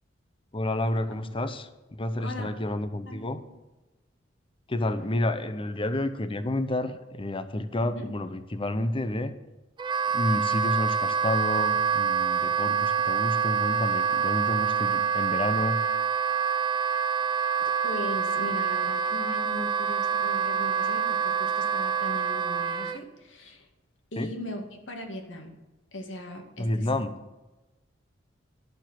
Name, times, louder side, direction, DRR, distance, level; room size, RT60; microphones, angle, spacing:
voice 1, 0.5-3.4 4.7-9.3 10.1-15.8 24.2-24.3 26.6-27.1, left 1 dB, 30° left, 11 dB, 0.8 m, -30 dB
voice 2, 2.2-2.6 3.1-3.5 7.9-8.1 17.8-23.7 24.1-25.6 25.9-26.9, left 1 dB, 80° left, 3 dB, 2.3 m, -39 dB
Wind instrument woodwind instrument, 9.8-23.0, right 7 dB, 25° right, 0.6 m, -26 dB
12.0 x 7.1 x 7.8 m, 1.1 s
head